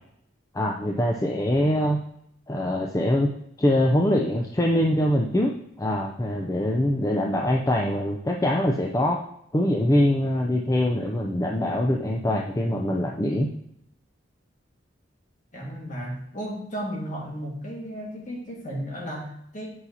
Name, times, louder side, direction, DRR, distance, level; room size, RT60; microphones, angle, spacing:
voice 1, 0.5-2.0 2.5-3.3 3.6-9.2 9.5-13.5, left 1 dB, 15° left, 0 dB, 0.4 m, -23 dB
voice 2, 15.5-19.7, equal, 40° left, -2 dB, 1.6 m, -34 dB
8.2 x 5.6 x 2.7 m, 0.73 s
head